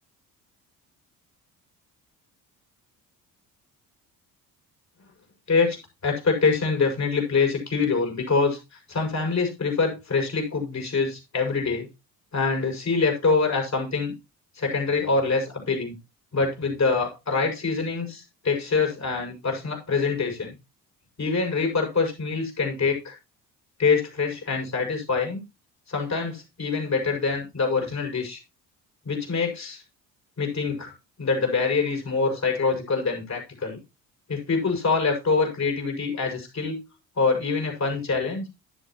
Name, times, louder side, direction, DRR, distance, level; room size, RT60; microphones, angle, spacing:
voice 1, 6.0-11.9 12.3-14.1 14.5-15.9 16.3-20.5 21.2-23.1 23.8-25.4 25.9-28.4 29.0-29.8 30.4-30.9 31.2-33.8 34.3-36.8 37.2-38.5, left 4 dB, 35° left, 2 dB, 6.6 m, -25 dB
11.5 x 10.5 x 3.1 m, 0.27 s
figure-of-eight pair, 50°, 49 cm